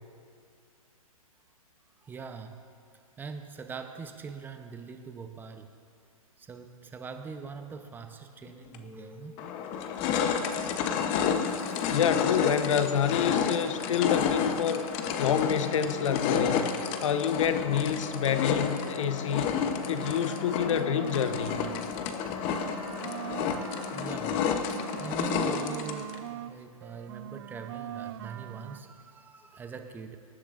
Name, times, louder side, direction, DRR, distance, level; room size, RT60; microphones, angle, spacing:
voice 1, 2.0-2.6 3.2-5.7 6.4-9.5 11.5-11.8 19.1-19.6 22.3-23.1 23.9-30.2, right 5 dB, 10° right, 7 dB, 0.8 m, -43 dB
sound 1, 8.7-8.8 9.4-26.2, left 7 dB, 30° left, 1.0 m, -30 dB
voice 2, 11.9-14.8 15.2-19.5 19.9-21.7, left 8 dB, 60° left, 10 dB, 1.0 m, -28 dB
sound 2, 19.6-21.9 22.2-26.5 26.8-28.8, right 12 dB, 45° right, 0.5 m, -42 dB
25.5 x 11.5 x 2.6 m, 2.5 s
hypercardioid pair, 130°, 19 cm